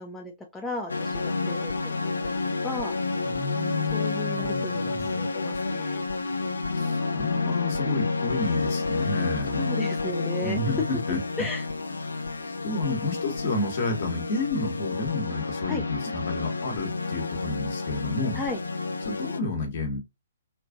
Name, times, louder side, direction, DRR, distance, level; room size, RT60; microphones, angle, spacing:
voice 1, 0.0-1.9 2.2-2.3 2.6-3.0 3.9-6.0 9.6-10.6 11.4-11.6 15.7-15.8 18.3-18.6, left 2 dB, 10° left, 0.4 m, -35 dB
sound 1, 0.9-19.4, left 3 dB, 70° left, 0.4 m, -30 dB
voice 2, 3.2-5.2 6.7-9.7 10.4-11.2 12.6-18.4 19.0-20.0, left 3 dB, 50° left, 1.1 m, -31 dB
3.0 x 2.4 x 2.2 m
figure-of-eight pair, 120°, 0 cm